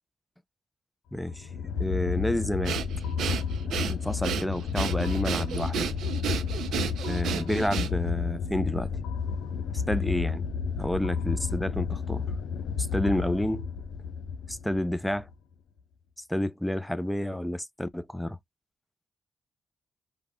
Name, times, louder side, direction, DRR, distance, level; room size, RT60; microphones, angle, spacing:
voice 1, 1.1-1.5 1.8-2.8 3.9-5.9 7.1-8.9 9.7-10.4 10.8-12.2 12.8-13.6 14.5-15.3 16.3-18.4, left 1 dB, 5° left, 0.8 m, -30 dB
sound 1, 1.2-15.3, left 6 dB, 90° left, 0.8 m, -31 dB
Breathing, 2.6-8.2, right 8 dB, 90° right, 0.8 m, -32 dB
5.2 x 2.5 x 3.7 m
cardioid pair, 55°, 0 cm